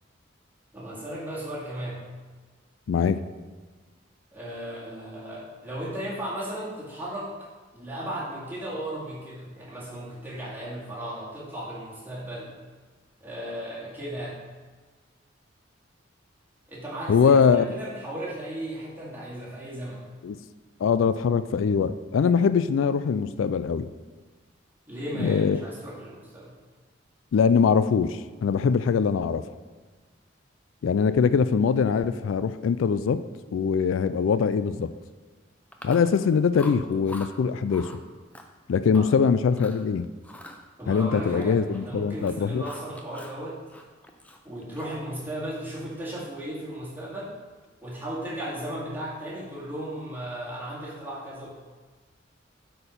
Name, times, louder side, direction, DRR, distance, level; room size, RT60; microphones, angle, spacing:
voice 1, 0.7-2.1 4.3-7.3 7.7-12.5 13.2-14.4 16.7-20.0 24.9-26.5 38.9-39.1 40.8-43.6 44.4-47.3 47.8-51.5, right 1 dB, 10° right, -8 dB, 2.2 m, -35 dB
voice 2, 2.9-3.2 17.1-17.7 20.2-20.4 20.8-23.9 25.2-25.6 27.3-29.4 30.8-33.2 33.5-34.9 35.8-37.9 38.7-40.1 40.9-42.6, left 6 dB, 85° left, 13 dB, 0.3 m, -22 dB
Chewing mastication, 35.7-36.3 36.5-37.3 37.7-38.0 38.3-39.2 39.5-39.8 40.2-41.9 42.1-43.4 43.7-45.1, left 1 dB, 5° left, 0.5 m, -44 dB
8.4 x 4.5 x 5.2 m, 1.4 s
head